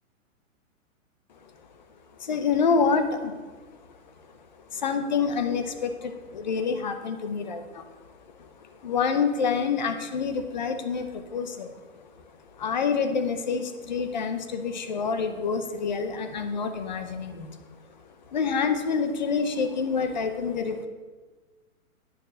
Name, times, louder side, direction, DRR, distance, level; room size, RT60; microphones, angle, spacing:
voice 1, 2.2-3.5 4.7-7.8 8.4-11.8 12.5-17.6 18.3-20.9, left 5 dB, 35° left, 9 dB, 0.7 m, -27 dB
9.4 x 6.6 x 6.2 m, 1.3 s
hypercardioid pair, 175°, 42 cm